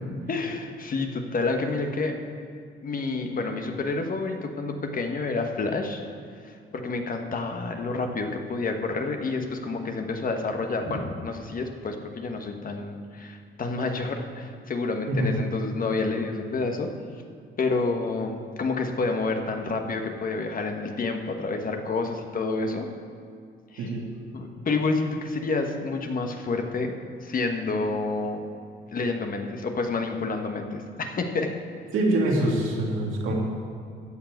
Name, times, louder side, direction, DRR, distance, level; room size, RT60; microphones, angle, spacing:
voice 1, 0.3-2.2 2.8-6.0 6.5-16.9 17.6-22.9 23.7-23.9 24.3-26.9 27.2-28.4 28.9-31.5, left 3 dB, 45° left, 4 dB, 1.2 m, -29 dB
voice 2, 15.1-15.4 23.8-24.1 31.9-33.3, right 1 dB, 85° right, -1 dB, 2.4 m, -24 dB
14.0 x 4.8 x 9.1 m, 2.3 s
cardioid pair, 90°, 20 cm